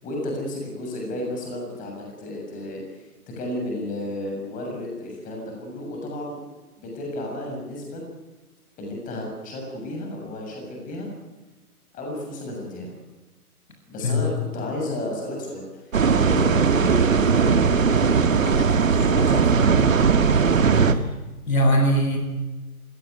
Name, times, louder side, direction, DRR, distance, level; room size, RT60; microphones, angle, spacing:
voice 1, 0.0-3.1 3.4-6.4 6.8-8.0 8.8-11.1 11.9-12.9 13.9-20.1, left 1 dB, 15° left, 0 dB, 7.0 m, -33 dB
sound 1, 15.9-20.9, right 5 dB, 60° right, 2.2 m, -18 dB
voice 2, 20.7-21.0 21.5-22.2, equal, 65° left, 4 dB, 7.8 m, -21 dB
27.5 x 17.5 x 9.6 m, 1.2 s
figure-of-eight pair, 130°, 45 cm